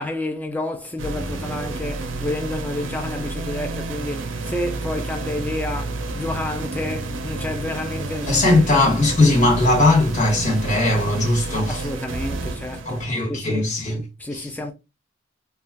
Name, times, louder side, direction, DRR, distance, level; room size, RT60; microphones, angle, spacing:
voice 1, 0.0-9.0 11.7-13.7 14.2-14.7, left 1 dB, 10° left, 0.3 m, -30 dB
sound 1, 1.0-13.1, right 2 dB, 70° right, 0.5 m, -30 dB
voice 2, 8.3-11.9 12.8-14.0 14.3-14.5, left 2 dB, 35° left, 1.0 m, -19 dB
2.3 x 2.3 x 3.3 m
head